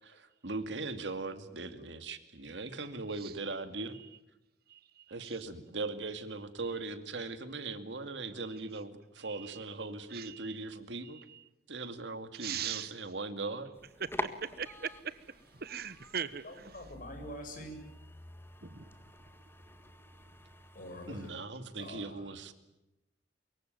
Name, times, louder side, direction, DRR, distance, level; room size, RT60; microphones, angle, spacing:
voice 1, 0.0-4.0 5.1-11.2 11.7-13.8 21.1-22.5, right 3 dB, 80° right, 2.3 m, -39 dB
voice 2, 4.7-5.3 9.2-9.7 10.1-10.6 11.0-11.4 12.3-13.0 14.0-16.9 18.6-19.1, right 7 dB, 60° right, 1.2 m, -41 dB
sound 1, 13.7-21.3, left 2 dB, 15° left, 1.7 m, -46 dB
voice 3, 16.4-17.8 20.7-21.3 21.7-22.3, equal, 50° left, 7.6 m, -45 dB
24.5 x 22.5 x 9.2 m
head